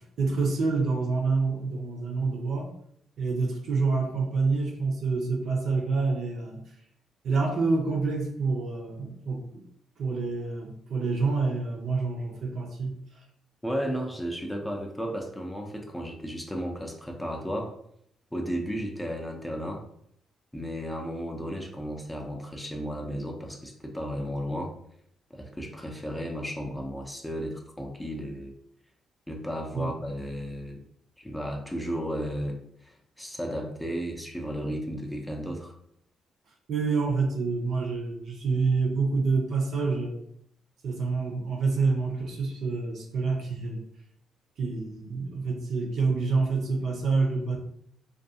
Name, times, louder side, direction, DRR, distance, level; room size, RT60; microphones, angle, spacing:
voice 1, 0.2-2.7 3.2-6.6 7.2-9.6 10.0-12.9 29.7-29.9 36.7-40.2 40.8-43.8 44.6-47.6, right 4 dB, 65° right, 1 dB, 0.6 m, -27 dB
voice 2, 13.6-17.7 18.3-19.8 20.5-24.7 25.3-28.5 29.3-30.8 31.2-35.7, equal, 10° left, 1 dB, 0.5 m, -34 dB
2.4 x 2.2 x 2.7 m, 0.70 s
cardioid pair, 90°, 0 cm